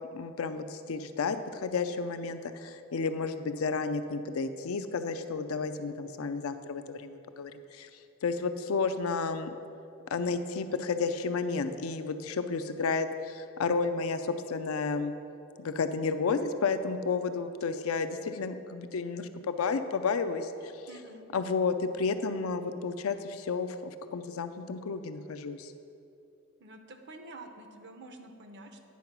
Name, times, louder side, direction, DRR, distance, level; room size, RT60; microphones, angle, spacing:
voice 1, 0.1-7.9 8.2-9.5 10.1-15.1 15.6-20.7 21.3-25.7, left 4 dB, 80° left, 9 dB, 0.5 m, -32 dB
voice 2, 20.9-21.2 26.6-28.8, right 2 dB, 55° right, 6 dB, 0.8 m, -48 dB
9.4 x 4.8 x 5.9 m, 2.6 s
head